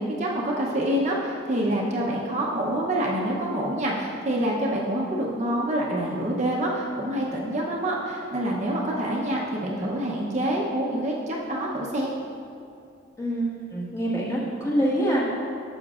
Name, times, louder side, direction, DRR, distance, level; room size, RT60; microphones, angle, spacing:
voice 1, 0.0-12.1, right 1 dB, 35° right, -3 dB, 0.7 m, -26 dB
voice 2, 13.2-15.2, right 1 dB, 15° left, -7 dB, 1.5 m, -25 dB
12.0 x 7.2 x 2.4 m, 2.5 s
head